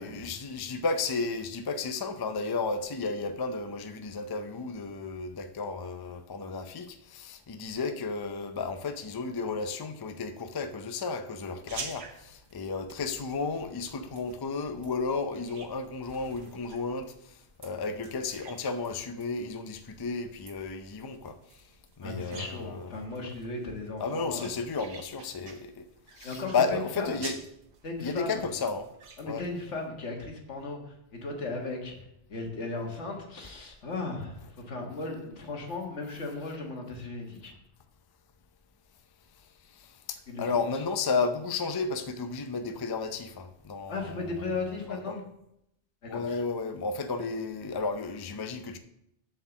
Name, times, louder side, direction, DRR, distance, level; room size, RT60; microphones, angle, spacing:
voice 1, 0.0-21.7 22.0-23.0 24.0-25.9 26.1-27.4 28.0-28.9 29.2-29.5 39.4-45.2 46.0-48.8, left 4 dB, 35° left, 0.4 m, -33 dB
sound 1, 11.7-29.5, right 4 dB, 50° right, 1.0 m, -49 dB
voice 2, 22.0-24.5 26.2-27.1 27.8-28.4 29.2-32.0 32.3-37.5 40.3-40.7 43.9-45.2 46.0-46.4, left 3 dB, 85° left, 1.8 m, -36 dB
7.3 x 4.6 x 7.0 m
omnidirectional pair, 1.2 m